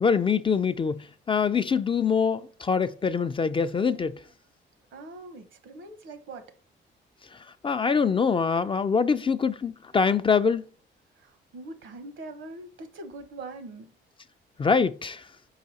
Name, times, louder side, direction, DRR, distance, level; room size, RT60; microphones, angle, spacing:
voice 1, 0.0-4.2 7.3-10.6 14.6-15.2, left 5 dB, 25° left, 0.4 m, -24 dB
voice 2, 4.9-6.5 11.2-13.9, right 2 dB, 70° right, 1.0 m, -42 dB
4.9 x 4.8 x 4.1 m
cardioid pair, 90°, 20 cm